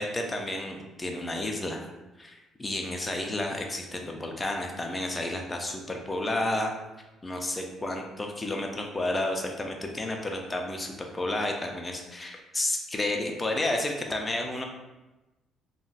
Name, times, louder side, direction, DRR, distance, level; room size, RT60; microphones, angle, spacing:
voice 1, 0.0-1.9 2.2-6.7 7.2-14.6, left 1 dB, 15° left, 2 dB, 0.4 m, -31 dB
2.4 x 2.1 x 3.9 m, 1.1 s
cardioid pair, 155°, 0 cm